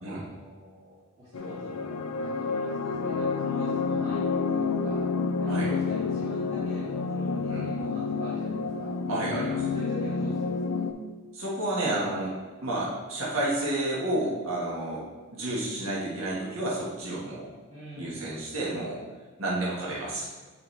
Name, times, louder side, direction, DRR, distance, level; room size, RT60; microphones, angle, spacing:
voice 1, 0.1-4.2 4.5-5.1 5.4-8.9 9.7-10.8 17.7-18.3, equal, 30° right, -13 dB, 2.0 m, -44 dB
sound 1, 1.3-10.9, left 4 dB, 85° left, 0.5 m, -29 dB
voice 2, 9.1-9.7 11.3-12.3 12.6-15.0 15.3-17.5 18.0-19.0 19.4-20.3, right 1 dB, 70° right, -5 dB, 1.4 m, -30 dB
8.1 x 4.9 x 3.2 m, 1.3 s
head